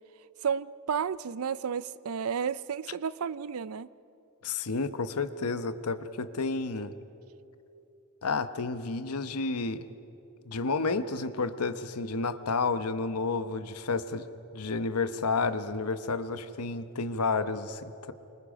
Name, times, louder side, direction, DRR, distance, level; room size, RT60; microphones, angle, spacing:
voice 1, 0.4-3.9, right 7 dB, 70° right, 18 dB, 0.5 m, -32 dB
voice 2, 4.4-6.9 8.2-9.8 10.5-14.2 14.5-18.1, left 4 dB, 85° left, 11 dB, 1.0 m, -31 dB
28.0 x 24.5 x 5.2 m, 2.9 s
head